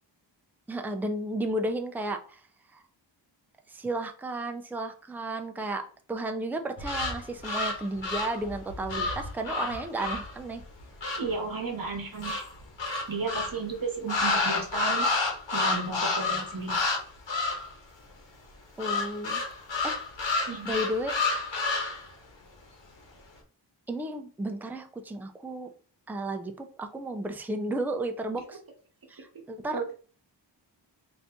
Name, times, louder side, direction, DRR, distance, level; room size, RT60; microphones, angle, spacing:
voice 1, 0.7-2.4 2.7-2.8 3.7-10.6 18.8-19.4 19.8-20.4 20.6-21.2 23.9-25.7 26.1-28.6 29.1-29.8, right 1 dB, 5° right, 6 dB, 0.4 m, -33 dB
sound 1, 6.8-11.3 12.2-13.6 14.1-17.0 17.3-17.7 18.8-22.1, left 3 dB, 80° left, 1.2 m, -30 dB
voice 2, 11.2-12.5 13.1-17.0 20.5-20.8 29.7-29.9, right 4 dB, 50° right, 3 dB, 1.1 m, -34 dB
4.1 x 2.6 x 3.4 m, 0.40 s
wide cardioid pair, 120°, 44 cm